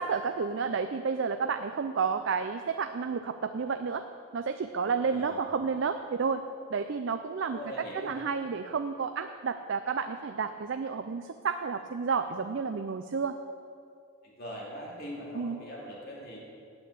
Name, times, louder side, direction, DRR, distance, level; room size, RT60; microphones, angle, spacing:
voice 1, 0.0-4.0 4.3-6.4 6.7-13.4 15.3-15.6, right 5 dB, 60° right, 8 dB, 0.4 m, -31 dB
voice 2, 5.0-5.7 7.5-8.2 14.2-16.4, equal, 45° left, -4 dB, 2.5 m, -42 dB
8.9 x 8.8 x 8.3 m, 2.5 s
head